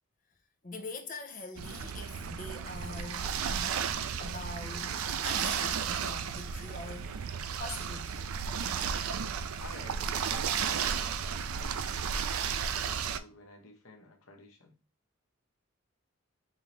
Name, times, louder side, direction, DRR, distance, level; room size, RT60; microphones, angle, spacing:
voice 1, 0.6-3.3 4.2-7.2 7.5-8.3, left 3 dB, 40° left, 0.8 m, -43 dB
sound 1, 1.6-13.2, right 7 dB, 85° right, 0.4 m, -33 dB
voice 2, 9.6-14.7, left 2 dB, 80° left, 1.1 m, -53 dB
5.3 x 2.8 x 3.1 m
head